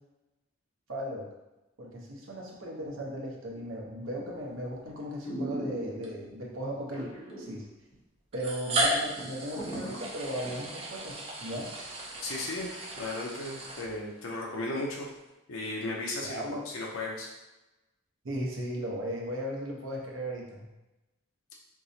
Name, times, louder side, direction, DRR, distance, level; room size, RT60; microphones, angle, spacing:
voice 1, 0.9-1.3 1.8-7.1 7.4-7.7 8.3-11.7 16.2-16.6 18.2-20.7, equal, 75° right, -2 dB, 0.8 m, -37 dB
sound 1, 4.1-4.4 4.9-5.0 5.2-6.3 6.9-7.6 7.9-8.0 8.5-8.6 8.8-10.7 11.1-11.2, right 1 dB, 30° left, 1.0 m, -38 dB
sound 2, 4.9-5.0 6.0-6.1 7.3-7.4 8.3-14.3, right 1 dB, 30° right, 0.5 m, -34 dB
voice 2, 12.2-15.1 15.5-17.3, left 2 dB, 80° left, -2 dB, 0.5 m, -35 dB
4.5 x 2.0 x 2.7 m, 1.0 s
head